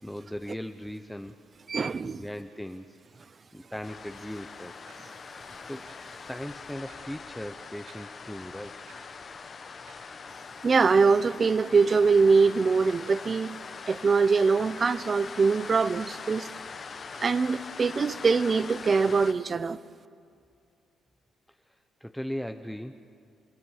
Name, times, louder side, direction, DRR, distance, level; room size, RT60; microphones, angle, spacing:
voice 1, 0.0-1.4 2.0-3.0 3.5-4.9 5.6-5.9 6.2-8.8 21.6-21.7 22.0-23.0, equal, 5° left, 0.8 m, -38 dB
voice 2, 1.7-2.2 10.6-13.6 13.9-16.5 17.2-19.8, right 4 dB, 35° right, 0.6 m, -23 dB
sound 1, 3.8-19.3, left 5 dB, 45° left, 1.3 m, -42 dB
sound 2, 4.9-5.0 5.9-6.0 6.9-7.0 7.9-8.0 8.9-9.0 9.9-10.0 10.9-11.0 11.9-12.0 12.9-13.0 13.9-14.0 14.9-15.0, right 4 dB, 85° right, 7.5 m, -52 dB
29.0 x 16.5 x 7.3 m
cardioid pair, 90°, 0 cm